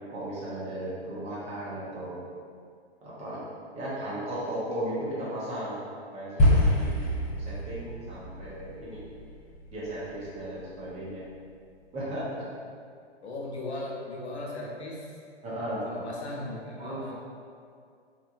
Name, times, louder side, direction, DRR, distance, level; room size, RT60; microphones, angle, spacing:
voice 1, 0.0-2.2 3.0-3.4 3.7-5.8 6.1-6.9 7.4-9.0 9.7-11.2 11.9-12.4 15.4-15.9 16.8-17.1, right 1 dB, 20° right, -8 dB, 0.6 m, -35 dB
sound 1, 6.4-10.8, left 1 dB, 20° left, 0.6 m, -27 dB
voice 2, 13.2-15.0 15.8-17.1, left 2 dB, 85° left, -3 dB, 0.7 m, -37 dB
3.0 x 2.2 x 2.3 m, 2.2 s
figure-of-eight pair, 115°, 32 cm